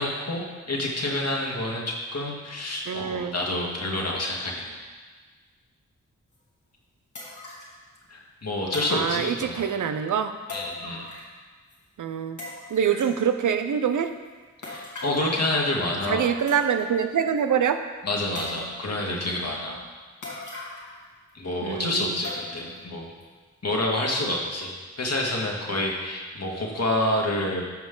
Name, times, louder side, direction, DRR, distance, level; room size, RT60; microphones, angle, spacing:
voice 1, 0.0-4.8 8.1-9.7 10.5-11.1 14.6-16.2 18.0-19.8 21.3-23.1 23.6-27.6, left 1 dB, 55° left, -2 dB, 2.0 m, -28 dB
voice 2, 2.9-3.4 8.9-10.3 12.0-12.4 12.7-14.1 16.1-17.8 21.6-22.2, right 7 dB, 90° right, 8 dB, 0.6 m, -25 dB
sound 1, 6.3-6.4 7.1-7.8 8.7-9.6 10.5-11.4 11.7-11.8 12.4-13.2 14.6-15.3 16.1-16.2 16.5-17.0 17.4-17.5 18.3-18.9 20.2-21.0 21.3-21.4 22.2-22.8 23.2-23.3 23.9-24.0, left 2 dB, 75° left, 2.3 m, -40 dB
14.0 x 5.2 x 3.9 m, 1.4 s
cardioid pair, 45°, 30 cm